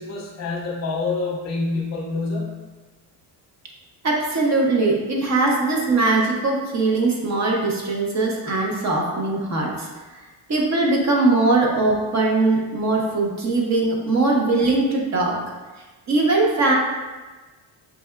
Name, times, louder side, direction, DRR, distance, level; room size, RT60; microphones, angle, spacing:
voice 1, 0.0-2.5, left 3 dB, 35° left, -1 dB, 0.9 m, -27 dB
voice 2, 4.0-9.9 10.5-15.4 16.1-16.7, right 3 dB, 35° right, -1 dB, 0.8 m, -20 dB
5.6 x 3.3 x 2.2 m, 1.3 s
cardioid pair, 145°, 46 cm